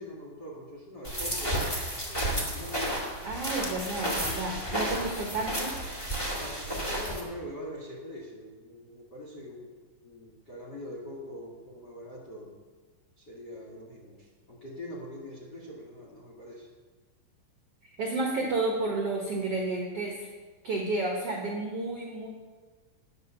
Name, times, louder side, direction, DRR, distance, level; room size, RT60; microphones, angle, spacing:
voice 1, 0.0-1.6 2.1-3.0 6.2-9.7 10.0-12.5 13.2-16.7, left 1 dB, 85° left, -3 dB, 0.9 m, -43 dB
sound 1, 1.0-7.2, right 1 dB, 25° left, 0.6 m, -32 dB
voice 2, 3.2-5.7 18.0-20.3 20.6-22.3, right 2 dB, 75° right, -1 dB, 1.3 m, -31 dB
10.5 x 9.8 x 6.9 m, 1.3 s
omnidirectional pair, 5.2 m